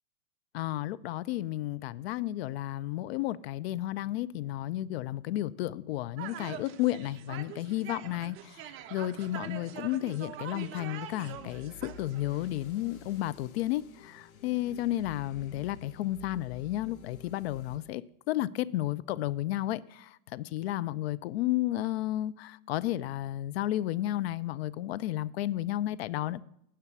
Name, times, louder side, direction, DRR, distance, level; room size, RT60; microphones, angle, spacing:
voice 1, 0.5-8.6 8.9-18.0 18.3-26.4, left 14 dB, 50° left, 0.5 m, -32 dB
sound 1, 6.2-13.2, right 10 dB, 30° right, 0.8 m, -44 dB
sound 2, 11.3-17.8, left 5 dB, 75° left, 2.1 m, -51 dB
11.0 x 5.9 x 6.9 m
hypercardioid pair, 130°, 42 cm